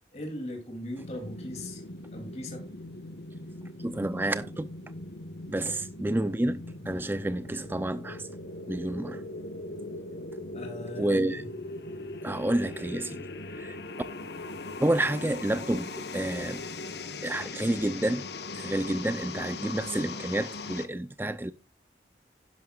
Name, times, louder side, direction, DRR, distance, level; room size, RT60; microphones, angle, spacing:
voice 1, 0.1-1.8 2.1-2.7 5.6-5.8 10.5-11.5, left 1 dB, 35° left, 2.7 m, -39 dB
sound 1, 1.0-20.9, left 2 dB, 70° left, 1.1 m, -40 dB
voice 2, 3.8-4.7 5.5-8.3 8.7-9.2 11.0-11.4 12.2-13.2 13.5-13.8 14.8-16.6 17.2-18.2 18.6-21.5, right 1 dB, 10° right, 0.4 m, -29 dB
11.5 x 11.0 x 2.3 m
head